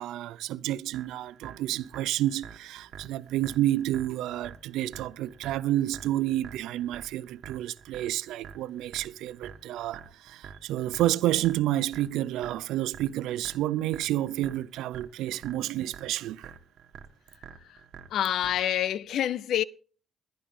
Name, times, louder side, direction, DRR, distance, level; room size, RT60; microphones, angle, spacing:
voice 1, 0.0-16.5, right 14 dB, 90° right, 0.6 m, -30 dB
sound 1, 0.9-18.9, right 7 dB, 70° right, 1.7 m, -48 dB
voice 2, 18.1-19.6, left 11 dB, 75° left, 0.7 m, -27 dB
20.5 x 11.5 x 3.7 m
cardioid pair, 90°, 0 cm